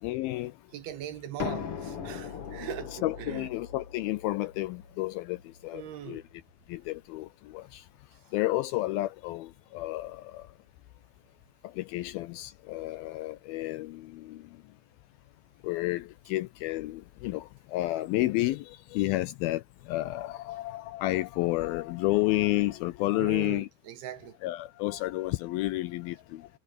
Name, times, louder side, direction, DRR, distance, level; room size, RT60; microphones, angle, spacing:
voice 1, 0.0-0.5 3.0-6.2 6.7-7.8 8.3-10.5 11.6-14.4 15.6-23.7 24.4-26.5, left 18 dB, 80° left, 2.2 m, -31 dB
voice 2, 0.7-3.5 5.7-6.2 23.2-24.4, right 10 dB, 75° right, 3.3 m, -40 dB
sound 1, 1.4-7.0, left 7 dB, 50° left, 1.7 m, -40 dB
omnidirectional pair, 4.7 m